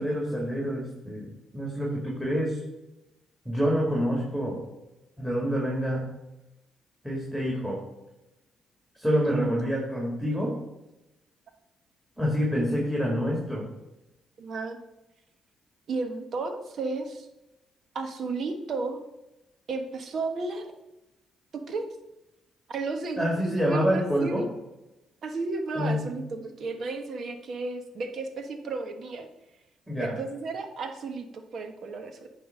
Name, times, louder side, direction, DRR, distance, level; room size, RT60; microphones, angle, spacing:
voice 1, 0.0-2.6 3.5-4.6 5.2-6.1 7.0-7.8 9.0-10.5 12.2-13.6 23.2-24.4 25.7-26.0 29.9-30.1, equal, ahead, -2 dB, 2.1 m, -27 dB
voice 2, 9.3-9.7 14.4-14.8 15.9-17.3 17.9-19.0 19.7-20.7 21.7-21.9 22.7-24.5 25.2-29.3 30.0-32.3, right 3 dB, 60° right, 6 dB, 1.1 m, -33 dB
9.2 x 3.3 x 6.5 m, 0.95 s
cardioid pair, 90°, 0 cm